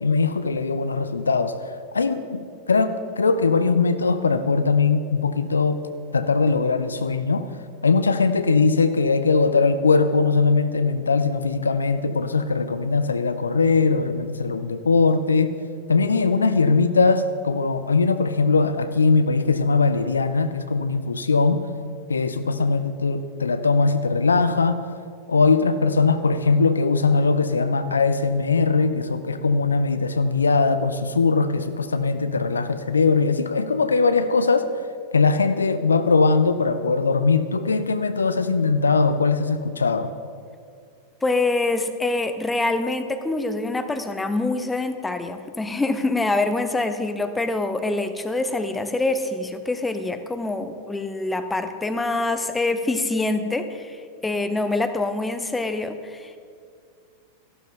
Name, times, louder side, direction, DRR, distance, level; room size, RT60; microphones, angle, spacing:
voice 1, 0.0-2.4 2.7-5.8 6.1-7.5 7.8-15.5 15.9-21.6 22.1-24.8 25.3-34.7 35.1-40.1, left 4 dB, 75° left, 11 dB, 0.5 m, -20 dB
voice 2, 41.2-56.4, left 2 dB, 10° left, 9 dB, 0.8 m, -25 dB
14.0 x 12.0 x 3.9 m, 2.2 s
figure-of-eight pair, 90°, 0 cm